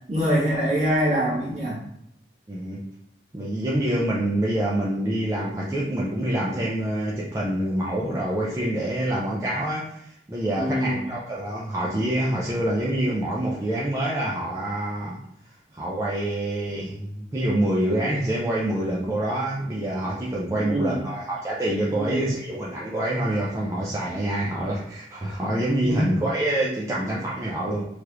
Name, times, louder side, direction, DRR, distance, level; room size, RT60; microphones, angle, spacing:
voice 1, 0.1-1.8 10.6-11.1 20.5-21.0 21.9-22.3 25.8-26.1, equal, 40° right, -8 dB, 1.3 m, -24 dB
voice 2, 2.5-2.8 3.3-15.2 15.7-27.9, right 1 dB, 15° right, -6 dB, 0.4 m, -26 dB
3.2 x 2.4 x 2.9 m, 0.78 s
head